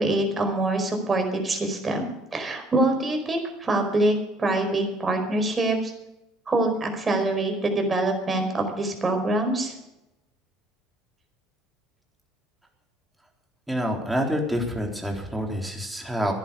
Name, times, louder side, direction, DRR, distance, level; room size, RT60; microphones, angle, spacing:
voice 1, 0.0-5.9 6.5-9.7, right 2 dB, 25° right, 4 dB, 4.7 m, -25 dB
voice 2, 13.7-16.3, equal, 5° right, 1 dB, 3.9 m, -27 dB
15.0 x 11.0 x 7.0 m, 0.90 s
hypercardioid pair, 75°, 0 cm